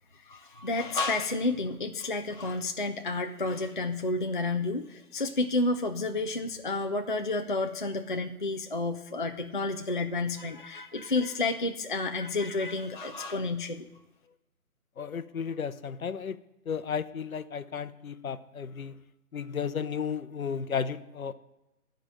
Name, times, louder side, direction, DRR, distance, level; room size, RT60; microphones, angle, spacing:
voice 1, 0.2-13.9, left 2 dB, 35° left, 5 dB, 0.4 m, -30 dB
voice 2, 15.0-16.4 16.7-19.0 19.3-21.3, left 6 dB, 65° left, 13 dB, 0.8 m, -34 dB
12.0 x 5.2 x 7.6 m, 0.99 s
figure-of-eight pair, 150°, 45 cm